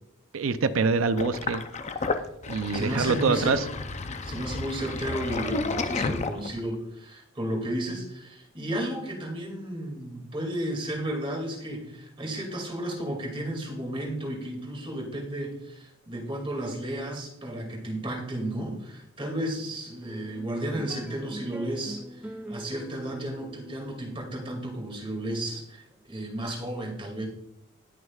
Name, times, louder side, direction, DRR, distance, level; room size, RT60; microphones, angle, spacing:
voice 1, 0.3-1.6 2.5-3.6, right 4 dB, 70° right, 13 dB, 0.6 m, -25 dB
Sink (filling or washing), 1.2-6.7, left 3 dB, 35° left, 0.6 m, -32 dB
voice 2, 2.7-3.7 4.2-27.3, right 1 dB, 25° right, 0 dB, 2.4 m, -33 dB
sound 1, 20.0-26.7, right 1 dB, 5° right, 0.4 m, -43 dB
19.0 x 6.4 x 2.4 m, 0.81 s
head